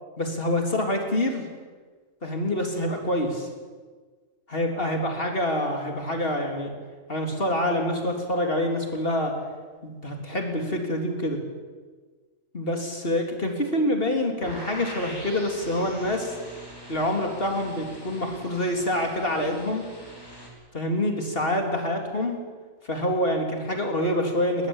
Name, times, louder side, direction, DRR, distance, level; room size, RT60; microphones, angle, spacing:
voice 1, 0.2-1.5 2.2-3.5 4.5-6.7 7.1-9.3 9.8-11.4 12.5-16.3 16.9-19.9 20.7-22.4 22.8-24.7, left 1 dB, 45° left, 2 dB, 3.8 m, -26 dB
sound 1, 14.4-20.5, equal, 15° left, 5.7 m, -43 dB
21.0 x 19.5 x 9.1 m, 1.4 s
omnidirectional pair, 1.4 m